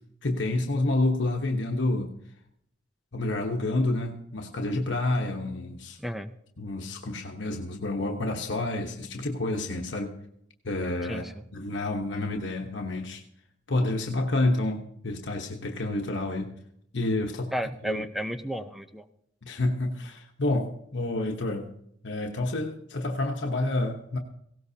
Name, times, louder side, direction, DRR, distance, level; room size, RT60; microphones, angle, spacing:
voice 1, 0.2-2.1 3.1-6.0 6.6-10.2 10.6-11.3 11.5-13.2 13.7-16.5 16.9-17.5 17.8-18.0 19.4-21.7 22.0-24.2, left 2 dB, 80° left, 2 dB, 1.1 m, -29 dB
voice 2, 6.0-6.3 11.1-11.3 17.5-19.0, equal, ahead, 9 dB, 0.7 m, -32 dB
18.5 x 17.0 x 2.8 m, 0.72 s
head